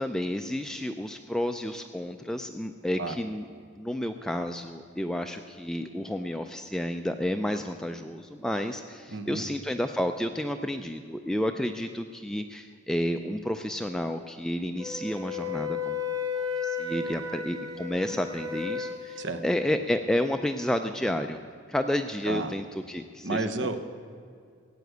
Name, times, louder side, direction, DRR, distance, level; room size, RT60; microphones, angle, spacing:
voice 1, 0.0-3.4 3.8-16.0 16.3-21.4 21.7-23.5, left 1 dB, 5° left, 6 dB, 0.4 m, -31 dB
voice 2, 9.1-9.5 19.2-19.4 22.2-22.5 23.2-23.8, right 3 dB, 60° right, 9 dB, 1.0 m, -31 dB
Wind instrument woodwind instrument, 14.8-19.5, left 5 dB, 20° right, 1.1 m, -33 dB
15.5 x 9.3 x 7.9 m, 2.2 s
head